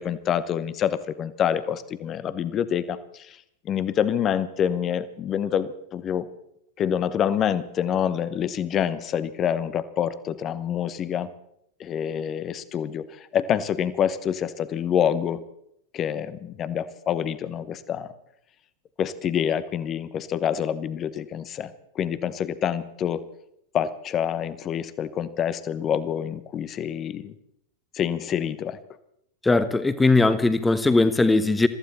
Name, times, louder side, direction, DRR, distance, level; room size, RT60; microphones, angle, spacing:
voice 1, 0.0-3.4 3.6-6.3 6.8-11.3 11.8-15.4 15.9-18.1 19.0-23.2 23.7-27.3 27.9-28.8, left 9 dB, 30° left, 0.9 m, -27 dB
voice 2, 29.4-31.7, left 3 dB, 10° left, 1.2 m, -19 dB
22.5 x 14.5 x 4.2 m
figure-of-eight pair, 90°, 0 cm